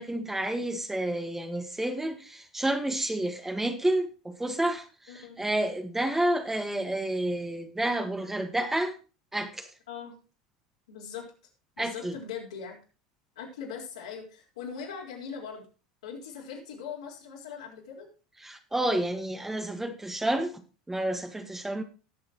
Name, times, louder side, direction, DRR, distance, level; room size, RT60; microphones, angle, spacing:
voice 1, 0.0-8.9 9.3-9.7 11.8-12.1 18.4-20.6 20.9-21.8, right 1 dB, 10° right, 6 dB, 1.6 m, -30 dB
voice 2, 5.1-5.4 9.9-10.1 10.9-11.3 11.8-12.8 13.4-15.7 16.0-18.1, left 6 dB, 75° left, -2 dB, 4.4 m, -40 dB
18.5 x 7.2 x 3.0 m, 0.34 s
hypercardioid pair, 80°, 4 cm